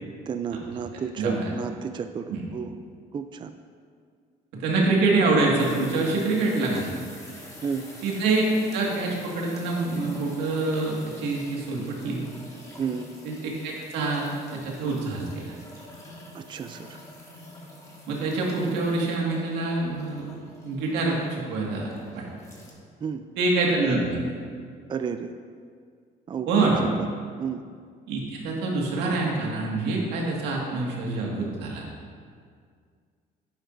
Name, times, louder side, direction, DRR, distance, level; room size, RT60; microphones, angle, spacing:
voice 1, 0.3-2.7 3.1-3.5 7.6-7.9 12.8-13.1 16.3-17.0 23.0-23.3 24.9-25.3 26.3-27.1 27.4-27.6, right 6 dB, 30° right, 8 dB, 0.4 m, -32 dB
voice 2, 1.2-1.5 2.3-2.4 4.5-7.0 8.0-8.4 8.7-12.2 13.2-15.5 18.1-20.3 20.6-22.2 23.4-24.2 26.5-26.8 28.1-31.8, right 3 dB, 90° right, -2 dB, 2.0 m, -26 dB
sound 1, 5.6-22.7, left 1 dB, 20° left, 1.8 m, -46 dB
11.5 x 9.0 x 2.6 m, 2.1 s
cardioid pair, 110°, 17 cm